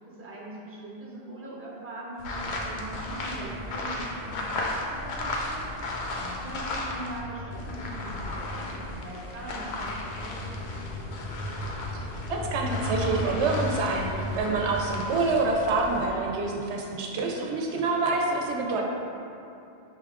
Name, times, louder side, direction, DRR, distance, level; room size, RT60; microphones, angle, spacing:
voice 1, 0.1-9.9 10.2-10.6, right 1 dB, 15° right, -5 dB, 0.6 m, -41 dB
sound 1, 2.2-7.2 7.5-16.1, left 2 dB, 75° left, 0.8 m, -35 dB
sound 2, 2.3-14.7, left 1 dB, 55° left, 0.5 m, -38 dB
voice 2, 12.3-18.8, right 3 dB, 90° right, 0 dB, 0.9 m, -27 dB
5.5 x 2.3 x 3.4 m, 2.7 s
omnidirectional pair, 1.1 m